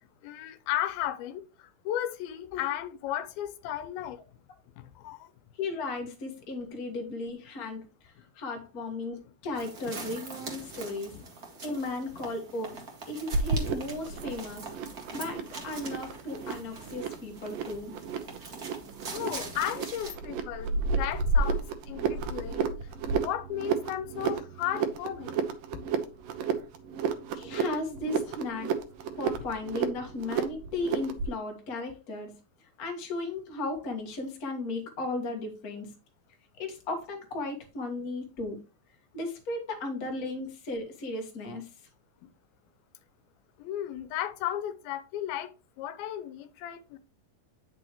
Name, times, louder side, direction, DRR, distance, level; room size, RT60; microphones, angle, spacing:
voice 1, 0.2-4.2 4.8-5.3 10.1-10.2 11.1-11.2 19.1-22.7 23.2-25.4 43.6-45.5 45.8-47.0, left 12 dB, 90° left, 2.7 m, -35 dB
voice 2, 5.5-11.1 11.6-12.8 13.1-14.7 15.1-17.9 27.3-28.7 29.2-32.3 32.8-35.9 36.6-38.6 39.1-41.7, left 2 dB, 45° left, 1.2 m, -35 dB
sound 1, 9.5-20.1, right 3 dB, 45° right, 1.3 m, -43 dB
sound 2, 13.3-31.4, right 4 dB, 75° right, 2.4 m, -32 dB
9.0 x 6.3 x 3.0 m
omnidirectional pair, 4.1 m